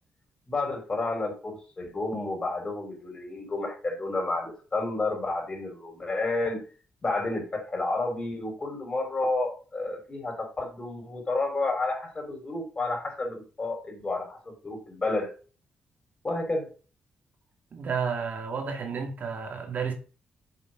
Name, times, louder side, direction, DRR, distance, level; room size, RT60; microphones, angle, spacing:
voice 1, 0.5-6.6 7.0-15.3 16.2-16.7, left 2 dB, 25° left, 5.0 m, -30 dB
voice 2, 17.7-19.9, right 6 dB, 55° right, 2.3 m, -31 dB
7.3 x 7.1 x 5.2 m
cardioid pair, 105°, 3 cm